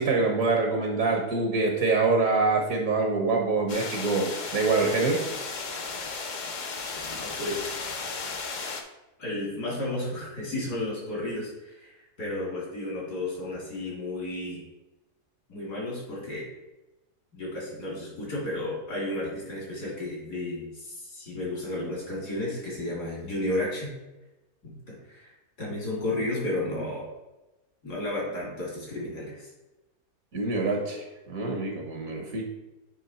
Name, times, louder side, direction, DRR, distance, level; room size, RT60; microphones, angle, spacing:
voice 1, 0.0-5.2 30.3-32.5, right 3 dB, 60° right, 1 dB, 1.4 m, -25 dB
sound 1, 3.7-8.8, left 4 dB, 60° left, 0.4 m, -35 dB
voice 2, 7.2-8.0 9.2-14.6 15.5-16.5 17.3-23.9 24.6-24.7 25.0-25.3 25.6-27.1 27.8-29.5, left 1 dB, 80° left, -5 dB, 3.4 m, -33 dB
9.3 x 3.3 x 4.3 m, 1.0 s
omnidirectional pair, 1.7 m